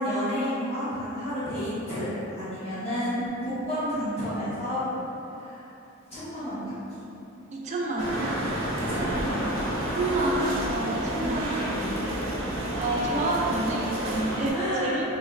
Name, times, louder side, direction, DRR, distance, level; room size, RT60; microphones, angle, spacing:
voice 1, 0.0-4.9 5.3-5.7 6.1-7.0 8.4-8.5 8.9-9.5 11.2-11.3 14.5-15.0, equal, 30° left, -15 dB, 1.3 m, -31 dB
voice 2, 7.5-8.3 9.9-11.7 12.8-15.1, right 2 dB, 35° right, -2 dB, 0.3 m, -28 dB
sound 1, 8.0-14.5, right 1 dB, 80° right, 0.6 m, -30 dB
3.1 x 3.0 x 2.5 m, 3.0 s
head